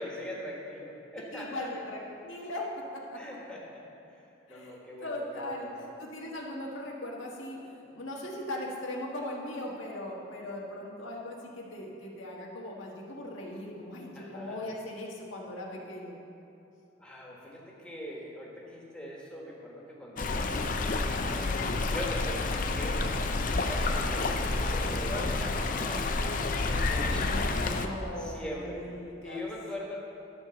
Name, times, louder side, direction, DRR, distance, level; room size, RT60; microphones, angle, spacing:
voice 1, 0.0-1.7 3.1-3.8 4.1-5.8 14.1-14.6 17.0-21.6 21.9-23.1 23.6-26.2 26.9-27.3 28.2-28.8 29.2-30.0, left 1 dB, 5° left, -4 dB, 1.5 m, -41 dB
voice 2, 1.3-3.4 4.5-16.2 27.1-29.5, left 1 dB, 85° left, -2 dB, 1.6 m, -39 dB
Stream, 20.2-27.9, left 3 dB, 40° left, 0.5 m, -29 dB
12.0 x 4.5 x 7.0 m, 2.7 s
head